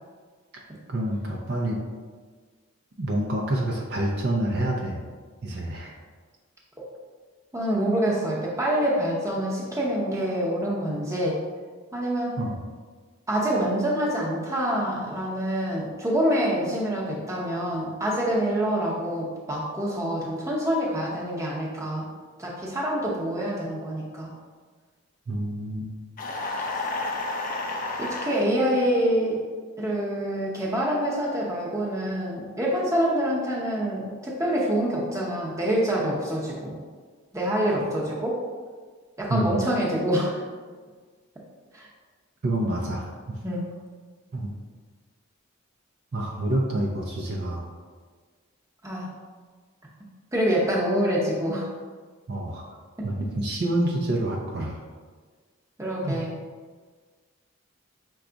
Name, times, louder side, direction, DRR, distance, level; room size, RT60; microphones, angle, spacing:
voice 1, 0.9-1.8 3.0-5.0 5.4-6.0 12.4-12.6 25.3-25.9 39.3-39.5 42.4-43.4 44.3-44.5 46.1-47.6 52.3-52.6 53.0-54.8 56.0-56.2, right 1 dB, 50° right, -1 dB, 0.5 m, -27 dB
voice 2, 7.5-11.4 11.9-12.3 13.3-22.1 22.4-24.3 28.0-29.4 29.8-36.8 37.3-38.4 39.2-40.4 41.7-41.9 43.4-43.6 48.8-49.1 50.3-51.7 53.0-53.1 55.8-56.3, equal, 15° right, -4 dB, 0.7 m, -26 dB
sound 1, 26.2-28.4, left 2 dB, 40° left, 0.4 m, -30 dB
5.9 x 2.3 x 3.8 m, 1.5 s
head